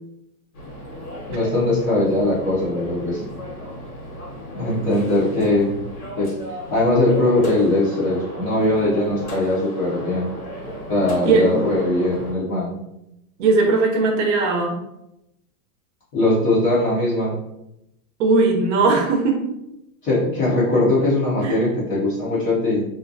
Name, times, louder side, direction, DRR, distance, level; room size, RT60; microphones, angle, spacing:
sound 1, 0.5-12.3, equal, 70° left, 1.2 m, -36 dB
voice 1, 1.3-3.2 4.5-5.7 6.2-6.3 6.7-10.3 10.9-12.7 16.1-17.4 20.0-22.9, left 2 dB, 20° left, -7 dB, 0.5 m, -20 dB
voice 2, 13.4-14.8 18.2-19.5 21.4-21.6, right 3 dB, 55° right, 2 dB, 0.6 m, -18 dB
2.4 x 2.2 x 2.6 m, 0.85 s
supercardioid pair, 145°, 44 cm